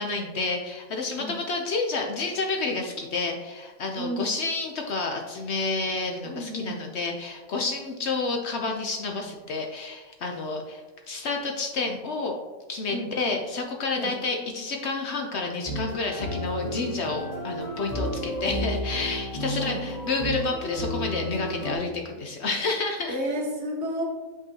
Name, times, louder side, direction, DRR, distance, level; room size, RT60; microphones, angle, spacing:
voice 1, 0.0-12.3 12.7-23.2, left 3 dB, 60° left, 2 dB, 0.8 m, -30 dB
voice 2, 3.9-4.3 6.2-6.8 12.9-13.1 13.9-14.2 19.5-19.8 23.1-24.0, equal, 55° right, -1 dB, 1.3 m, -32 dB
sound 1, 15.7-21.8, equal, 30° left, 0.9 m, -32 dB
6.1 x 5.4 x 2.8 m, 1.2 s
omnidirectional pair, 1.5 m